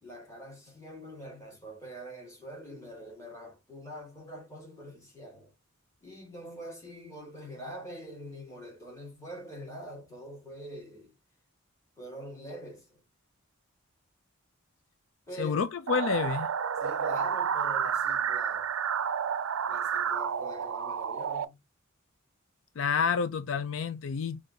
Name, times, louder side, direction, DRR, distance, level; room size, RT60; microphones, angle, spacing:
voice 1, 0.0-5.5 6.0-11.1 12.0-13.0 15.3-15.6 16.8-18.8 19.7-21.6, equal, 15° left, 1.8 m, -44 dB
voice 2, 15.4-16.5 22.8-24.4, left 6 dB, 70° left, 0.4 m, -29 dB
sound 1, 15.9-21.5, right 7 dB, 75° right, 0.4 m, -30 dB
4.1 x 2.6 x 3.8 m
head